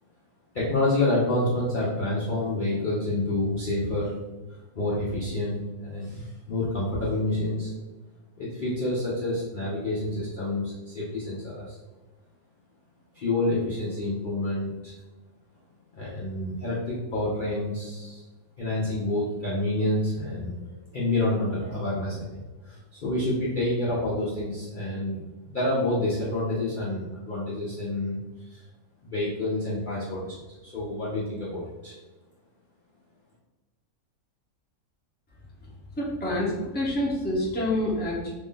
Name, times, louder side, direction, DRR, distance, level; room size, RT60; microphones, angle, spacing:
voice 1, 0.5-4.2 4.5-7.7 8.4-11.8 13.1-14.9 15.9-18.2 18.6-20.6 20.9-28.2 28.5-28.6 29.0-30.3 30.6-32.0, left 1 dB, 45° left, -7 dB, 0.7 m, -28 dB
voice 2, 35.6-38.3, left 1 dB, 10° left, -6 dB, 0.7 m, -28 dB
3.2 x 2.6 x 3.7 m, 1.2 s
omnidirectional pair, 1.6 m